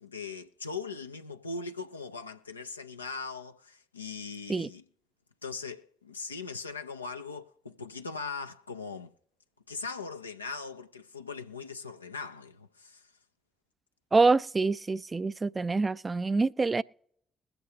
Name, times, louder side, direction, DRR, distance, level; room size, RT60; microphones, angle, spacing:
voice 1, 0.0-4.8 5.4-9.1 9.7-13.1, left 4 dB, 90° left, 0.4 m, -40 dB
voice 2, 14.1-16.8, right 3 dB, 30° right, 0.3 m, -26 dB
21.5 x 7.9 x 2.8 m
figure-of-eight pair, 40°, 0 cm